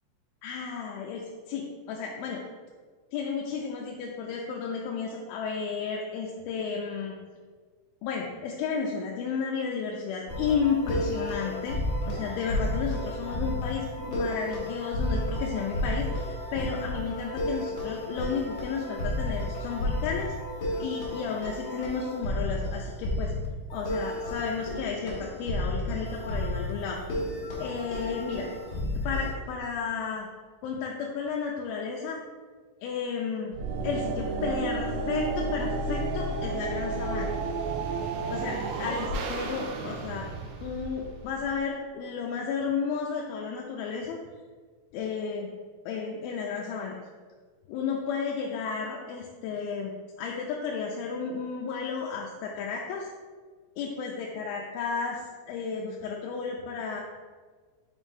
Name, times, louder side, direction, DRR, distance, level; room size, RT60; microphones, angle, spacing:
voice 1, 0.4-2.4 3.1-7.2 8.0-11.8 12.1-20.3 20.8-23.3 23.7-27.0 27.6-28.5 29.0-30.3 30.6-32.2 32.8-33.5 33.8-37.3 38.3-40.3 40.6-44.2 44.9-45.5 45.9-47.0 47.7-49.9 50.2-53.1 53.8-57.0, left 6 dB, 85° left, -1 dB, 2.4 m, -32 dB
sound 1, 10.3-29.3, left 1 dB, 50° left, 1.7 m, -32 dB
sound 2, 33.5-41.6, right 3 dB, 85° right, 2.5 m, -32 dB
7.1 x 5.3 x 2.6 m, 1.5 s
omnidirectional pair, 4.3 m